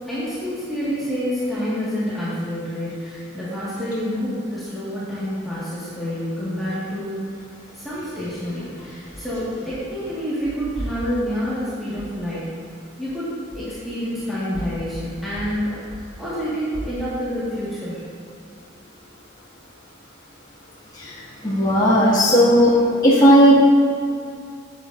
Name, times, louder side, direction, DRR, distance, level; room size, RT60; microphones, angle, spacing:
voice 1, 0.1-7.2 7.7-12.5 13.0-18.0, equal, ahead, -13 dB, 1.9 m, -28 dB
voice 2, 21.4-22.7 23.0-23.5, equal, 20° left, -11 dB, 2.2 m, -14 dB
10.5 x 9.0 x 2.7 m, 2.5 s
head